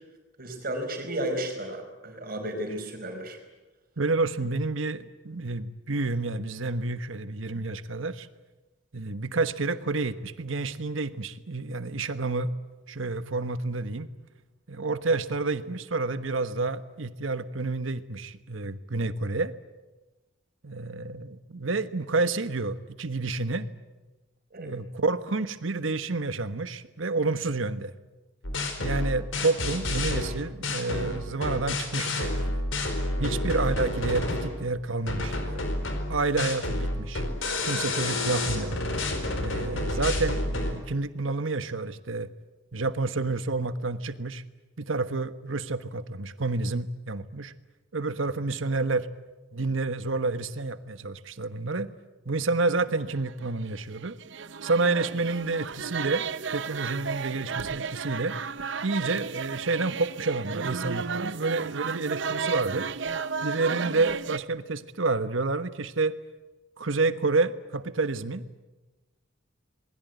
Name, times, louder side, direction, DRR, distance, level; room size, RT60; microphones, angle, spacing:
voice 1, 0.4-3.4 24.5-24.7 33.2-33.4, right 1 dB, 50° right, 4 dB, 4.9 m, -33 dB
voice 2, 4.0-8.3 8.9-12.5 12.9-14.1 14.7-19.5 20.6-23.7 24.6-27.9 28.8-32.6 33.2-35.6 36.1-37.2 37.6-38.8 39.4-42.3 42.7-44.4 44.8-47.5 47.9-49.1 49.5-51.9 52.2-54.2 54.6-56.2 56.5-58.4 58.8-62.9 63.4-66.2 66.8-68.4, right 3 dB, 85° right, 11 dB, 1.3 m, -29 dB
sound 1, 28.4-34.6 35.1-40.7, left 2 dB, 80° left, 4.6 m, -29 dB
sound 2, 53.2-64.4, right 5 dB, 65° right, 0.8 m, -33 dB
27.0 x 21.0 x 9.3 m, 1.1 s
head